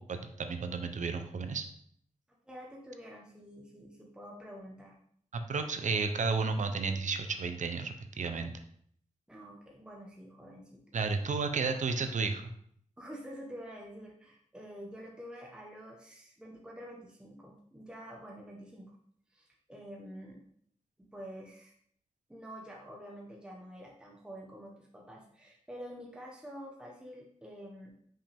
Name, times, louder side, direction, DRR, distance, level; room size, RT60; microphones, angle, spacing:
voice 1, 0.0-1.6 5.3-8.5 10.9-12.5, right 4 dB, 70° right, 7 dB, 0.6 m, -32 dB
voice 2, 2.5-5.0 9.3-11.6 13.0-18.9 19.3-20.4 21.1-21.7 22.3-27.9, equal, 5° right, -1 dB, 0.9 m, -48 dB
5.5 x 5.3 x 3.4 m, 0.64 s
wide cardioid pair, 125°, 13 cm